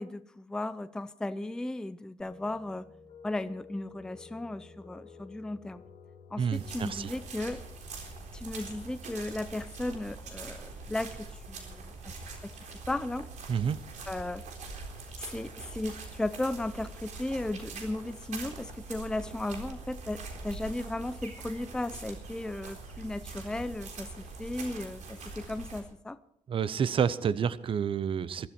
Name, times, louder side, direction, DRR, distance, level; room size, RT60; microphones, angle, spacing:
voice 1, 0.0-2.9 3.2-5.8 6.3-7.6 8.3-12.1 12.4-12.5 12.9-13.3 14.1-14.4 15.2-26.2, left 2 dB, 5° left, 12 dB, 0.5 m, -35 dB
sound 1, 2.2-9.2, left 5 dB, 45° left, 6.2 m, -53 dB
voice 2, 6.4-7.1 13.5-13.8 26.5-28.5, right 7 dB, 40° right, 16 dB, 0.7 m, -29 dB
sound 2, 6.5-25.8, right 3 dB, 70° right, 3.9 m, -43 dB
21.5 x 13.0 x 4.4 m, 0.74 s
cardioid pair, 155°, 13 cm